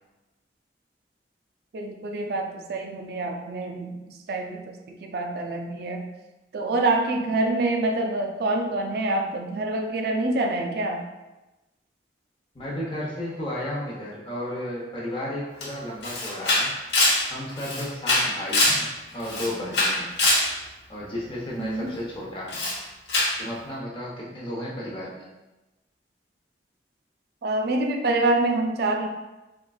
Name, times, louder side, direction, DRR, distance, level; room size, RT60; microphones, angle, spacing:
voice 1, 1.7-6.1 6.5-11.0 21.6-21.9 27.4-29.1, right 2 dB, 60° right, 3 dB, 0.3 m, -26 dB
voice 2, 12.5-16.7 17.3-20.1 20.9-22.7 23.4-25.2, left 1 dB, 30° left, -5 dB, 0.8 m, -33 dB
Camera, 15.6-15.7 16.0-18.8 19.2-20.5 22.5-22.8 23.1-23.4, left 2 dB, 75° left, 1.0 m, -23 dB
4.5 x 2.4 x 2.3 m, 1.0 s
head